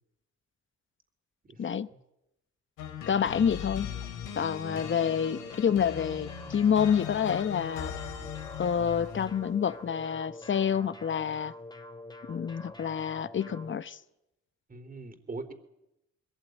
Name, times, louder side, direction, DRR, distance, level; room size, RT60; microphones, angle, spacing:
voice 1, 1.5-2.0 4.7-4.9 14.7-15.5, right 3 dB, 30° right, 3.6 m, -42 dB
sound 1, 2.8-9.5, left 9 dB, 90° left, 3.6 m, -39 dB
voice 2, 3.1-3.9 4.4-7.9 8.6-11.5 12.3-14.0, left 7 dB, 40° left, 1.1 m, -28 dB
sound 2, 4.7-13.8, left 1 dB, 15° left, 2.7 m, -46 dB
21.5 x 18.0 x 9.3 m
cardioid pair, 90°, 30 cm